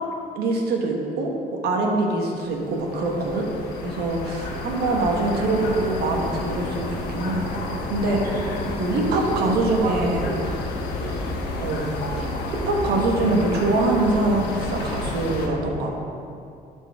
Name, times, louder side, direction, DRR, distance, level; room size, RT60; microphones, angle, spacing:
voice 1, 0.3-3.5 3.8-8.2 8.8-10.3 11.6-16.0, right 2 dB, 75° right, 1 dB, 1.2 m, -24 dB
sound 1, 2.3-15.5, left 2 dB, 90° left, 1.0 m, -30 dB
voice 2, 8.2-8.8 9.1-11.3, right 3 dB, 60° right, -1 dB, 0.7 m, -34 dB
12.5 x 4.6 x 3.5 m, 2.5 s
cardioid pair, 110°, 17 cm